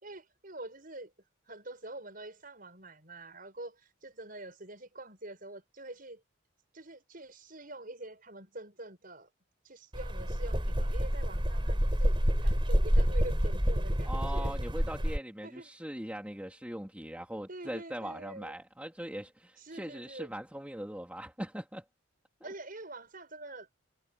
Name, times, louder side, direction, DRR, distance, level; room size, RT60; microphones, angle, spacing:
voice 1, 0.0-1.1 1.5-6.2 6.7-9.3 9.6-12.2 12.4-14.5 15.4-15.7 17.5-18.5 19.6-20.3 22.4-23.7, right 2 dB, 45° right, 6.5 m, -46 dB
sound 1, 9.9-15.2, equal, 25° right, 5.6 m, -28 dB
voice 2, 14.0-21.8 22.4-22.5, right 1 dB, 5° right, 2.9 m, -41 dB
head